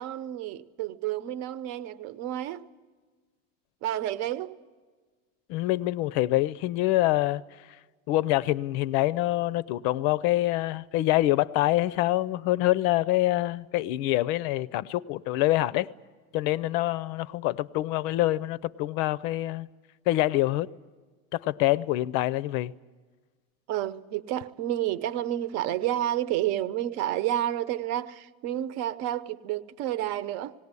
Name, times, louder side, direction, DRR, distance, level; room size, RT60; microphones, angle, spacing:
voice 1, 0.0-2.6 3.8-4.6 23.7-30.5, right 12 dB, 50° right, 0.8 m, -30 dB
voice 2, 5.5-7.4 8.1-15.9 16.3-19.7 20.1-20.7 21.3-22.7, left 16 dB, 80° left, 0.7 m, -25 dB
18.5 x 18.5 x 9.6 m
cardioid pair, 180°, 33 cm